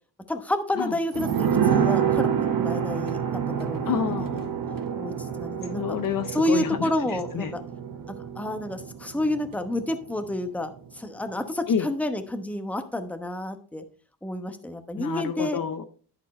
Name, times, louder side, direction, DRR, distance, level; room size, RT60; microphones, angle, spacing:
voice 1, 0.3-3.2 3.5-4.1 5.0-6.0 6.3-7.6 8.4-13.8 14.2-15.6, left 1 dB, 5° left, 7 dB, 1.0 m, -29 dB
sound 1, 1.1-10.4 10.7-10.8, right 8 dB, 45° right, 1.1 m, -28 dB
voice 2, 3.9-4.5 5.6-7.5 11.7-11.9 15.0-15.8, left 8 dB, 45° left, 9 dB, 0.8 m, -29 dB
11.0 x 4.5 x 4.2 m, 0.44 s
cardioid pair, 95°, 46 cm